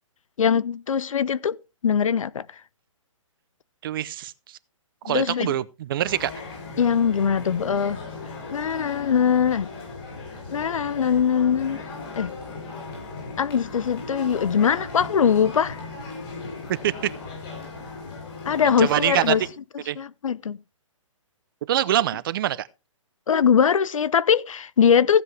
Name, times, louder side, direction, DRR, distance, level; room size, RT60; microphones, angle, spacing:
voice 1, 0.4-1.6 1.8-2.5 5.1-5.5 6.8-8.0 8.5-9.7 10.5-11.9 12.1-12.3 13.4-15.8 18.5-19.4 20.0-20.6 23.3-25.2, left 7 dB, 80° left, 0.6 m, -21 dB
voice 2, 3.8-4.3 5.0-6.3 16.7-16.9 18.8-19.4 19.9-20.0 21.7-22.7, right 12 dB, 40° right, 0.6 m, -24 dB
sound 1, 6.0-19.5, left 3 dB, 45° left, 7.5 m, -37 dB
15.5 x 7.8 x 3.3 m
hypercardioid pair, 145°, 17 cm